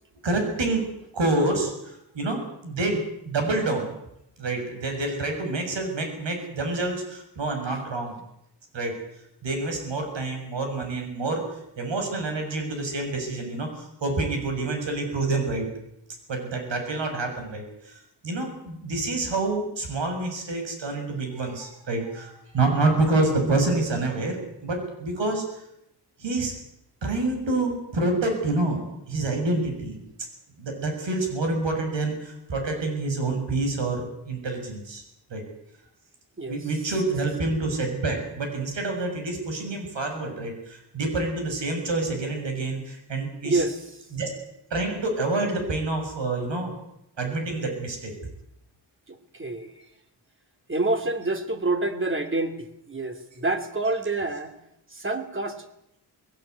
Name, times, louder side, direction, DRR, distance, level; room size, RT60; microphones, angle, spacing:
voice 1, 0.2-0.9 1.1-4.0 4.4-8.2 8.7-8.9 9.4-15.7 16.3-25.6 26.2-26.5 27.0-30.0 30.6-35.0 35.3-35.4 36.5-43.6 44.1-44.3 44.7-46.8 47.2-48.1, right 2 dB, 80° right, 4 dB, 7.0 m, -27 dB
voice 2, 43.4-43.8 49.1-49.7 50.7-54.5 54.9-55.7, right 2 dB, 30° right, 7 dB, 2.8 m, -27 dB
20.5 x 17.5 x 9.6 m, 0.78 s
wide cardioid pair, 115°, 43 cm